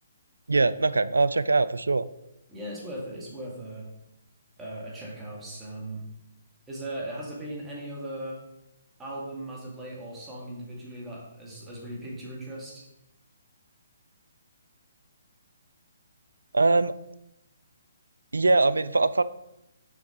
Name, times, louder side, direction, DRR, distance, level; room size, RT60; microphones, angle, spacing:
voice 1, 0.5-2.1 16.5-16.9 18.3-19.2, right 3 dB, 85° right, 16 dB, 0.3 m, -22 dB
voice 2, 2.5-3.9 4.6-6.0 6.7-8.4 9.0-12.9, right 1 dB, 15° right, -4 dB, 2.0 m, -38 dB
6.8 x 4.8 x 3.9 m, 0.87 s
figure-of-eight pair, 140°, 0 cm